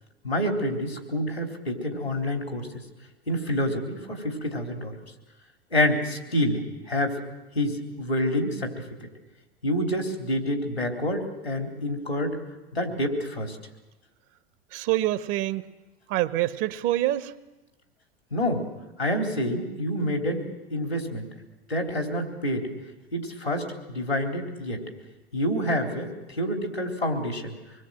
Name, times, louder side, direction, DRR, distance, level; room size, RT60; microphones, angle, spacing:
voice 1, 0.2-2.7 3.3-4.9 5.7-6.6 6.9-7.2 7.6-8.7 9.6-12.4 12.7-13.6 18.3-18.6 19.0-20.4 20.7-21.3 21.7-22.7 23.1-24.8 25.3-27.5, equal, 85° left, 3 dB, 3.8 m, -27 dB
voice 2, 14.7-15.7 16.1-17.3, right 15 dB, 40° right, 13 dB, 1.2 m, -26 dB
26.0 x 21.0 x 7.7 m, 1.1 s
figure-of-eight pair, 80°, 31 cm